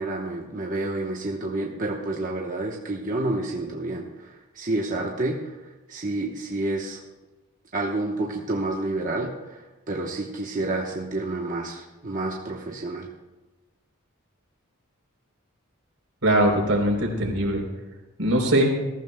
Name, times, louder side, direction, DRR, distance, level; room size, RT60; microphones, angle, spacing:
voice 1, 0.0-7.0 7.7-13.1, right 2 dB, 40° right, -1 dB, 1.0 m, -29 dB
voice 2, 16.2-17.6 18.2-18.8, right 1 dB, 75° right, 1 dB, 3.6 m, -21 dB
21.0 x 14.5 x 2.2 m, 1.1 s
head